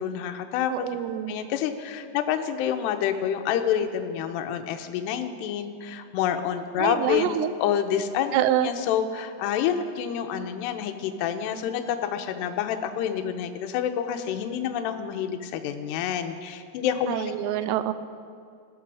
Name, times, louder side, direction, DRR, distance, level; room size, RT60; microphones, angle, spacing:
voice 1, 0.0-0.9 1.3-17.3, left 9 dB, 80° left, 7 dB, 3.0 m, -28 dB
voice 2, 0.7-1.3 6.8-7.5 8.3-8.7 17.1-17.9, right 12 dB, 90° right, 12 dB, 2.9 m, -26 dB
21.0 x 14.5 x 4.8 m, 2.3 s
omnidirectional pair, 4.9 m